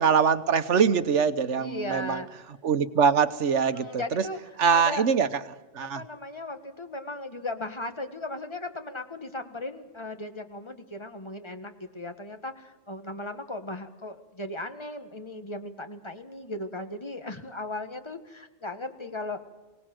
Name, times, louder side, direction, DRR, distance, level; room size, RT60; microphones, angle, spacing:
voice 1, 0.0-2.2 2.6-4.2 4.6-5.3 5.7-6.0, right 6 dB, 90° right, 12 dB, 1.4 m, -23 dB
voice 2, 1.6-2.3 3.6-4.4 4.7-5.0 5.8-19.4, left 2 dB, 25° left, 7 dB, 1.5 m, -37 dB
24.5 x 18.0 x 7.8 m, 1.1 s
omnidirectional pair, 1.2 m